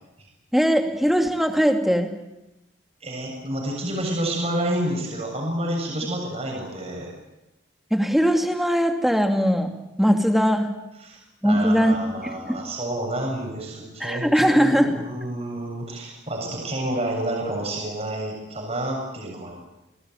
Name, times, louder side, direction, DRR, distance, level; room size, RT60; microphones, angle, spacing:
voice 1, 0.5-2.1 7.9-9.7 10.0-10.7 11.4-12.6 14.0-14.9, equal, ahead, 4 dB, 2.7 m, -20 dB
voice 2, 3.0-7.1 11.0-19.6, right 1 dB, 35° right, -1 dB, 7.0 m, -29 dB
28.5 x 20.0 x 9.3 m, 0.98 s
head